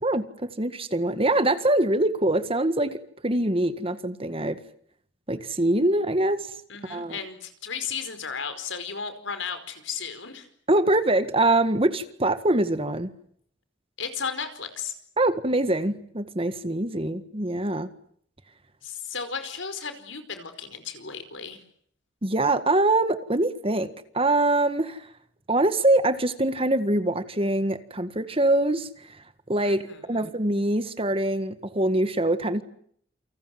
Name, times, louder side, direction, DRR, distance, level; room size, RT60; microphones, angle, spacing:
voice 1, 0.0-4.6 5.3-6.5 6.9-7.2 10.7-13.1 15.2-17.9 22.2-25.0 25.5-28.9 29.5-29.8 30.1-32.6, right 1 dB, 30° right, 11 dB, 1.7 m, -24 dB
voice 2, 6.7-10.5 14.0-14.9 18.8-21.6 29.6-30.3, left 6 dB, 80° left, 9 dB, 4.9 m, -34 dB
29.0 x 25.5 x 7.9 m, 0.64 s
head